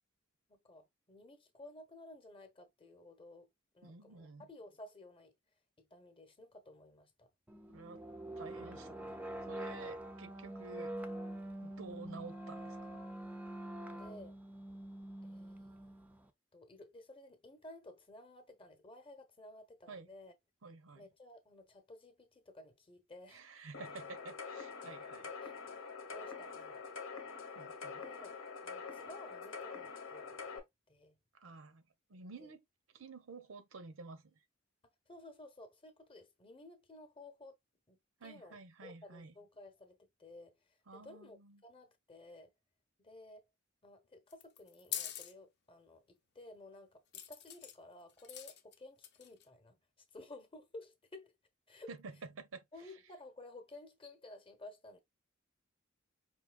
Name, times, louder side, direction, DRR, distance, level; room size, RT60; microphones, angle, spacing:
voice 1, 0.5-3.5 3.7-5.3 5.8-7.3 10.0-10.1 13.9-14.4 15.2-15.8 16.5-20.3 20.9-23.5 25.4-25.5 26.1-27.0 28.0-28.3 28.6-31.2 32.4-32.5 35.1-37.6 37.9-42.5 43.0-43.5 43.8-49.8 50.1-51.3 51.7-51.9 52.7-55.0, left 2 dB, 25° left, 0.9 m, -55 dB
voice 2, 3.8-4.5 7.7-8.0 8.4-10.9 11.6-13.0 19.9-20.1 20.6-21.1 23.3-25.3 27.5-28.0 31.3-31.8 32.1-32.6 32.9-34.4 38.2-39.3 40.9-41.6 51.9-52.7, right 4 dB, 80° right, 0.7 m, -51 dB
sound 1, 7.5-16.3, right 1 dB, 5° right, 0.4 m, -45 dB
sound 2, 23.7-30.6, left 5 dB, 90° left, 1.0 m, -46 dB
sound 3, 44.3-45.3 47.1-47.8 48.2-48.7 49.0-49.4, left 10 dB, 55° left, 0.7 m, -43 dB
4.9 x 2.7 x 2.3 m
head